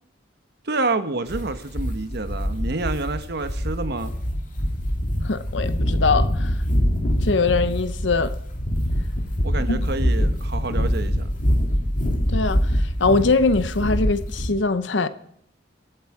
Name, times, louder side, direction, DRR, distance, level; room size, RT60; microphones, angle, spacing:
voice 1, 0.6-4.1 9.4-11.3, right 3 dB, 60° right, 1.1 m, -28 dB
sound 1, 1.3-14.5, equal, 45° left, 2.2 m, -24 dB
voice 2, 5.2-6.6 7.2-8.3 9.7-9.8 12.3-15.1, left 3 dB, 65° left, 0.8 m, -22 dB
24.0 x 8.2 x 4.8 m
head